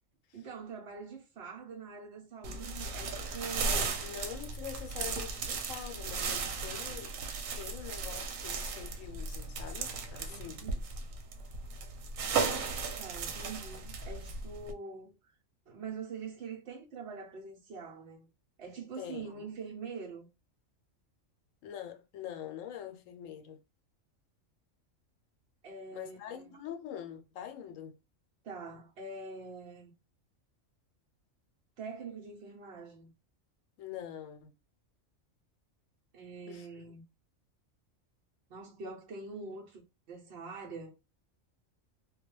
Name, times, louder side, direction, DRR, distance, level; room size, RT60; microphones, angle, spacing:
voice 1, 0.3-4.0 10.3-10.8 13.0-15.2 15.7-18.3 18.6-20.3 25.6-26.5 28.4-29.9 31.8-33.1 36.1-37.0 38.5-40.9, right 4 dB, 60° right, 0.8 m, -44 dB
sound 1, 2.4-14.7, right 4 dB, 85° right, 1.0 m, -36 dB
voice 2, 3.6-7.1 7.6-10.6 19.0-19.4 21.6-23.6 25.9-28.0 33.8-34.5 36.5-36.7, left 9 dB, 80° left, 1.0 m, -44 dB
2.3 x 2.2 x 3.0 m
omnidirectional pair, 1.4 m